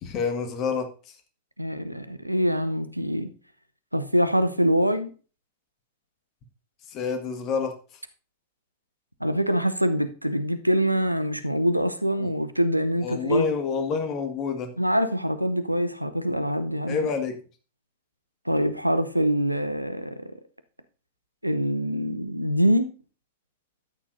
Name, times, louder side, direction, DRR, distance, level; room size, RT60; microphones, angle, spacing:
voice 1, 0.0-0.9 6.9-7.7 12.2-12.3 13.0-14.7 16.9-17.3, left 5 dB, 35° left, 1.6 m, -28 dB
voice 2, 1.6-3.3 3.9-5.1 9.2-13.5 14.8-17.0 18.5-20.3 21.4-22.9, equal, 90° right, 0.6 m, -24 dB
13.0 x 8.7 x 2.6 m
figure-of-eight pair, 90°, 0 cm